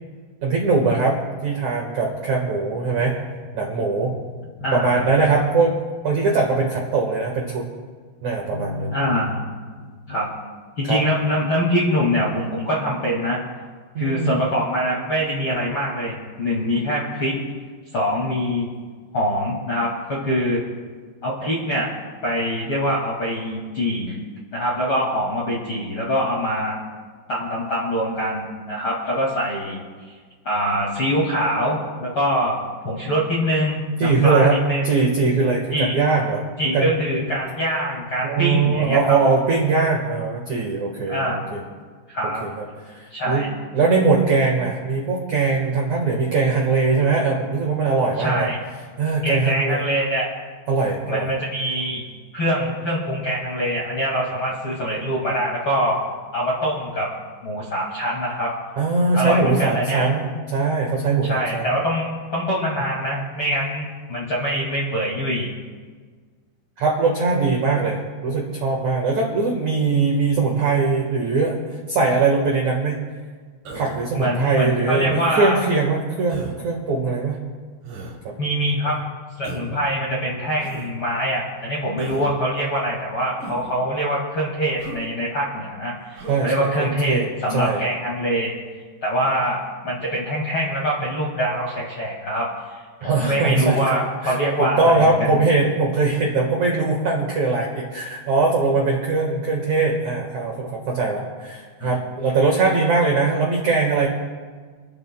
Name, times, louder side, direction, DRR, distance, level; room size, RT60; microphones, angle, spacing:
voice 1, 0.4-3.1 3.5-4.1 4.7-7.7 8.2-8.9 10.8-11.0 13.9-14.4 34.0-34.6 34.8-36.4 36.7-36.9 38.2-41.6 42.4-42.6 42.9-43.5 43.7-48.5 49.0-49.8 50.7-51.3 58.8-61.7 66.8-71.6 71.9-73.0 73.7-77.4 78.2-78.3 86.3-87.8 93.0-93.8 94.2-104.1, right 4 dB, 80° right, -1 dB, 1.6 m, -21 dB
voice 2, 4.6-5.0 8.5-9.5 10.1-10.3 10.8-13.4 14.0-17.4 17.9-18.7 19.1-20.6 21.2-21.9 22.2-24.2 24.5-26.8 27.3-29.8 30.4-34.9 35.7-36.0 36.6-39.0 41.1-41.5 42.1-42.4 43.1-43.5 48.2-48.6 49.2-50.3 51.1-52.0 52.3-56.0 56.3-57.1 57.4-58.5 59.1-60.1 61.2-65.5 74.1-75.6 78.4-79.0 79.4-88.5 89.0-95.4 101.8-101.9, equal, 50° left, -5 dB, 1.6 m, -24 dB
Human voice, 73.6-74.1 74.9-75.4 76.3-76.6 77.8-78.2 79.4-79.8 80.6-80.9 82.0-82.3 83.4-83.8 84.8-85.0 86.1-86.4 87.4-87.7, right 2 dB, 55° right, 4.5 m, -37 dB
29.5 x 12.5 x 2.2 m, 1.5 s
omnidirectional pair, 5.8 m